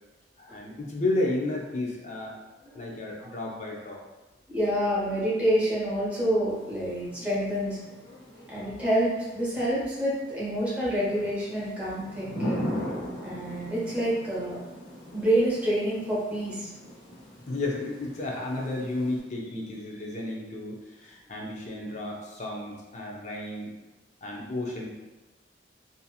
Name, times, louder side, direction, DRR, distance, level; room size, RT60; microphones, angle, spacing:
voice 1, 0.4-2.3 2.7-4.0 17.5-23.7 24.2-24.9, left 2 dB, 40° left, -2 dB, 0.5 m, -32 dB
voice 2, 4.5-7.8 8.5-12.7 13.2-14.6 15.1-16.7, equal, 10° right, -9 dB, 1.0 m, -27 dB
Thunder / Rain, 6.5-19.2, equal, 90° left, 0.9 m, -40 dB
2.8 x 2.6 x 2.3 m, 1.1 s
head